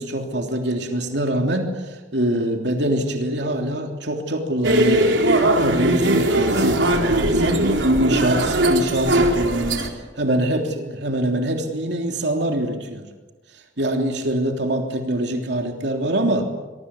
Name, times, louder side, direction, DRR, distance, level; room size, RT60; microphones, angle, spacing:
voice 1, 0.0-5.1 5.6-9.8 10.2-13.1 13.8-16.4, right 1 dB, 65° right, 3 dB, 3.2 m, -24 dB
sound 1, 4.6-9.9, right 1 dB, 85° right, 3.9 m, -19 dB
24.5 x 23.5 x 8.3 m, 1.2 s
head